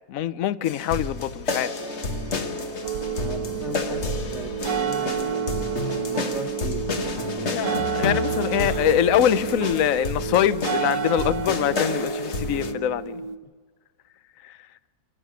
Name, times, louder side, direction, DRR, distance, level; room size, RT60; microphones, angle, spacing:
voice 1, 0.1-1.7 7.4-13.2 14.4-14.6, left 11 dB, 60° left, 0.9 m, -24 dB
sound 1, 0.6-12.7, left 4 dB, 40° left, 1.3 m, -30 dB
sound 2, 1.8-6.6 7.0-10.4, right 7 dB, 85° right, 1.9 m, -42 dB
sound 3, 2.8-13.4, right 7 dB, 65° right, 1.4 m, -30 dB
voice 2, 3.0-7.8 8.6-8.9, equal, ahead, 1.8 m, -39 dB
28.0 x 14.5 x 6.8 m
omnidirectional pair, 2.0 m